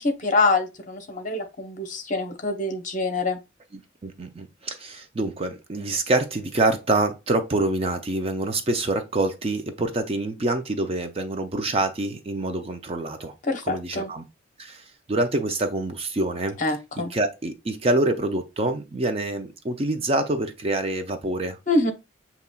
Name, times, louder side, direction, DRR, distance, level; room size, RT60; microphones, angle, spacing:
voice 1, 0.0-3.4 13.4-14.1 16.6-17.1 21.7-21.9, left 2 dB, 40° left, 0.8 m, -25 dB
voice 2, 4.0-13.3 13.7-14.2 14.6-16.6 17.1-21.6, right 2 dB, 30° right, 0.4 m, -26 dB
6.9 x 2.9 x 2.2 m
head